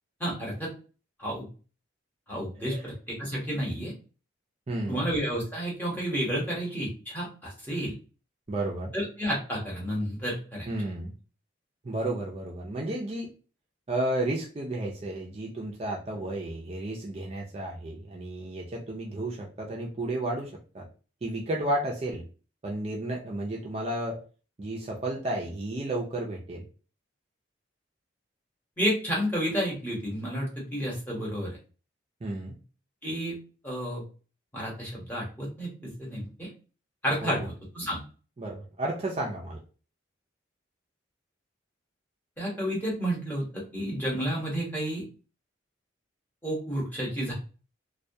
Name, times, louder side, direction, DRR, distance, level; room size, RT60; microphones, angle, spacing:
voice 1, 0.2-0.7 1.2-1.5 2.3-3.9 4.9-7.9 8.9-10.7 28.8-31.6 33.0-33.4 33.6-34.0 34.5-36.5 37.0-38.0 42.4-45.0 46.4-47.3, equal, 10° left, -5 dB, 0.9 m, -31 dB
voice 2, 2.6-2.9 4.7-5.0 8.5-8.9 10.7-11.1 11.8-13.3 13.9-20.9 21.2-22.2 22.6-24.2 24.6-26.6 32.2-32.6 37.2-37.5 38.4-39.6, right 1 dB, 30° right, -1 dB, 0.4 m, -32 dB
2.2 x 2.1 x 2.7 m, 0.36 s
head